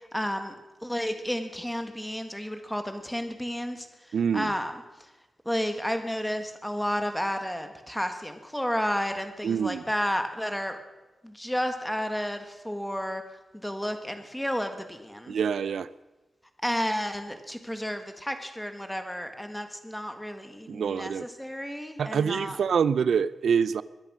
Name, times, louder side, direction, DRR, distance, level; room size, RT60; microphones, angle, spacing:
voice 1, 0.1-0.6 0.8-4.8 5.4-10.8 11.2-13.2 13.5-15.4 16.6-22.6, equal, 5° left, 7 dB, 1.7 m, -32 dB
voice 2, 4.1-4.5 9.4-9.8 15.3-15.9 20.7-21.3 22.0-23.8, right 7 dB, 85° right, 17 dB, 0.5 m, -26 dB
21.5 x 10.5 x 6.2 m, 1.1 s
wide cardioid pair, 110°, 0 cm